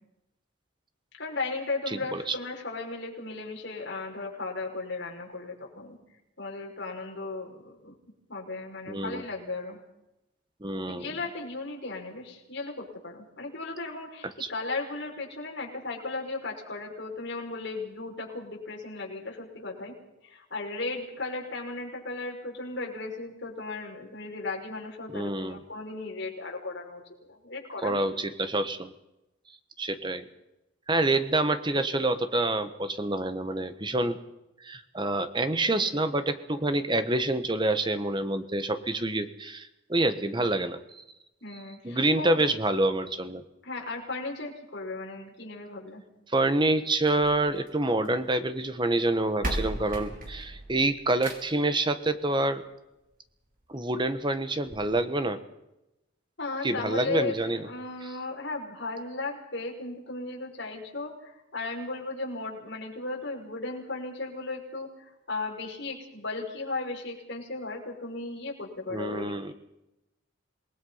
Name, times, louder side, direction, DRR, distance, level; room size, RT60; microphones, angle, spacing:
voice 1, 1.2-6.0 6.4-8.0 8.3-9.8 10.8-19.9 20.2-28.1 41.4-42.4 43.6-46.0 56.4-69.3, left 3 dB, 60° left, -1 dB, 6.0 m, -36 dB
voice 2, 1.9-2.3 8.9-9.2 10.6-11.1 14.4-14.5 25.1-25.6 27.8-28.9 29.8-30.3 30.9-34.2 34.6-40.8 41.8-43.4 46.3-52.6 53.7-55.4 56.6-57.7 68.9-69.5, right 2 dB, 25° right, 10 dB, 1.4 m, -27 dB
sound 1, 47.0-48.3 49.1-49.2 49.4-51.7 53.0-53.1 53.6-53.7 54.0-54.1 54.7-54.8, right 1 dB, 45° right, 5.1 m, -36 dB
27.0 x 20.0 x 5.8 m, 0.90 s
head